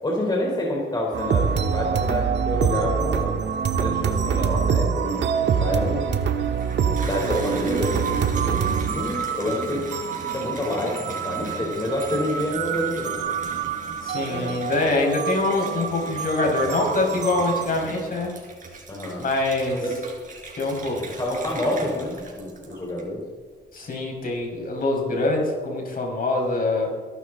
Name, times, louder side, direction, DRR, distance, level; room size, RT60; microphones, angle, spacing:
voice 1, 0.0-3.4 3.8-6.1 7.1-9.9 10.3-13.4 14.2-14.6 18.9-19.3 19.8-20.0 21.0-23.2, left 1 dB, 20° left, -2 dB, 3.7 m, -28 dB
sound 1, 1.1-17.7, right 7 dB, 60° right, 1.5 m, -26 dB
Water tap faucet / Bathtub (filling or washing), 6.4-23.3 23.8-24.3, right 4 dB, 40° right, 4.3 m, -39 dB
voice 2, 14.0-18.4 19.2-19.8 20.6-21.0 23.7-26.9, left 2 dB, 45° left, 0 dB, 5.2 m, -24 dB
21.5 x 12.5 x 3.9 m, 1.5 s
cardioid pair, 90°, 20 cm